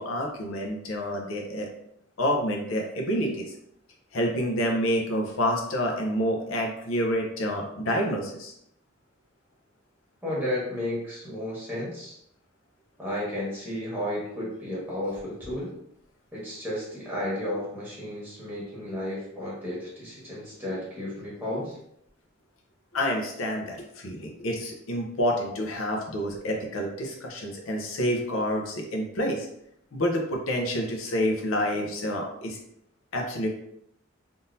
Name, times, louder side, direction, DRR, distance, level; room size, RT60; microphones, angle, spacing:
voice 1, 0.0-1.7 2.2-3.5 4.1-8.5 22.9-29.5 29.9-32.6 33.1-33.5, equal, 75° left, 0 dB, 0.7 m, -28 dB
voice 2, 10.2-12.2 13.0-15.7 16.3-21.8, left 1 dB, 10° right, -7 dB, 1.4 m, -33 dB
3.7 x 2.7 x 2.6 m, 0.74 s
head